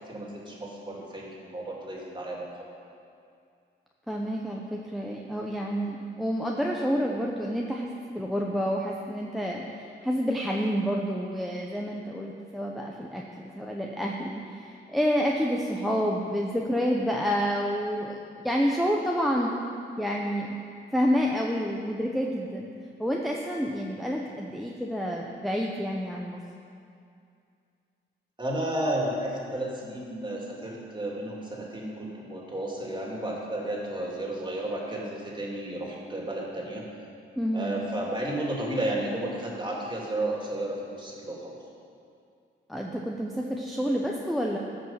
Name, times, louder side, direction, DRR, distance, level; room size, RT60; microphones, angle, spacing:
voice 1, 0.0-2.5 28.4-36.8 37.5-41.6, right 1 dB, 20° right, -3 dB, 2.6 m, -32 dB
voice 2, 4.1-7.9 8.1-9.6 10.0-19.5 20.0-20.6 20.9-22.7 23.0-26.4 37.4-37.8 42.7-44.6, equal, ahead, -1 dB, 0.8 m, -29 dB
14.0 x 5.4 x 5.7 m, 2.4 s
cardioid pair, 75°, 21 cm